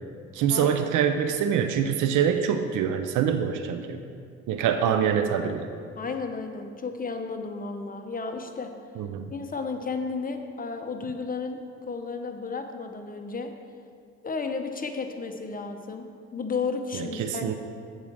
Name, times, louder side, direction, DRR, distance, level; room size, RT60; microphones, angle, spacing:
voice 1, 0.3-4.0 4.5-5.7 9.0-9.3 16.9-17.5, right 8 dB, 80° right, 7 dB, 0.6 m, -25 dB
voice 2, 6.0-8.7 9.3-13.5 14.2-17.5, left 4 dB, 30° left, 5 dB, 0.8 m, -33 dB
7.3 x 4.8 x 7.2 m, 2.3 s
cardioid pair, 90°, 30 cm